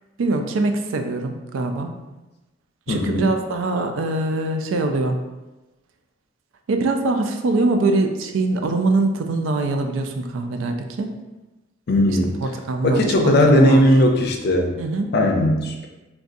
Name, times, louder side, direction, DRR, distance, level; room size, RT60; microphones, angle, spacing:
voice 1, 0.2-1.9 2.9-5.2 6.7-11.1 12.1-13.8 14.8-15.1, right 2 dB, 85° right, 5 dB, 0.4 m, -23 dB
voice 2, 2.9-3.3 11.9-12.4 12.8-14.7 15.1-15.9, left 1 dB, 55° left, 2 dB, 0.5 m, -17 dB
3.8 x 2.3 x 2.6 m, 1.1 s
head